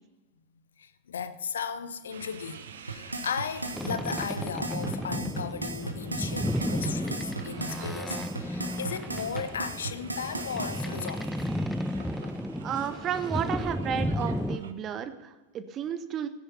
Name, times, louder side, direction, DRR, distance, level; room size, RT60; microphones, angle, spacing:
voice 1, 0.8-11.5, left 7 dB, 65° left, 0.9 m, -36 dB
sound 1, 2.1-14.7, right 6 dB, 65° right, 1.2 m, -46 dB
sound 2, 2.9-10.8, right 3 dB, 80° right, 1.3 m, -36 dB
Boat Water vehicle, 3.7-14.6, left 1 dB, ahead, 0.6 m, -33 dB
voice 2, 12.6-16.3, right 8 dB, 30° right, 1.0 m, -32 dB
16.0 x 10.0 x 5.6 m
figure-of-eight pair, 90°, 0 cm